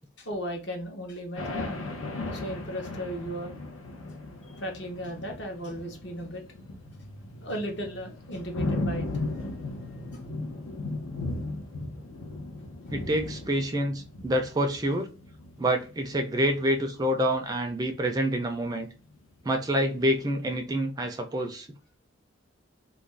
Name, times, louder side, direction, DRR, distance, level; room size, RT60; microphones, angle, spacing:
voice 1, 0.2-1.9 2.3-3.6 4.6-6.4 7.4-9.1, equal, 55° left, 0.8 m, -36 dB
sound 1, 1.4-17.6 17.8-18.7 19.0-19.2 19.6-20.1, left 2 dB, 90° left, 0.8 m, -37 dB
voice 2, 12.9-15.1 15.6-18.9 19.4-21.7, equal, 20° right, 0.3 m, -27 dB
2.4 x 2.2 x 3.2 m
head